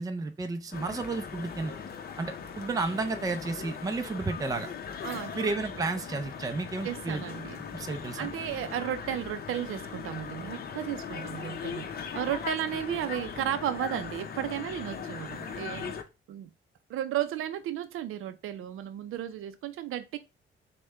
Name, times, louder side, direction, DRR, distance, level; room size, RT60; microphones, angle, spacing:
voice 1, 0.0-1.7 2.2-4.7 5.3-7.2 7.7-8.3, right 3 dB, 15° right, 0.4 m, -32 dB
sound 1, 0.7-16.0, left 6 dB, 50° left, 0.6 m, -39 dB
voice 2, 5.0-5.5 6.8-7.6 8.2-15.9 16.3-16.5 16.9-20.2, right 11 dB, 85° right, 0.5 m, -34 dB
6.4 x 2.2 x 3.3 m
cardioid pair, 145°, 21 cm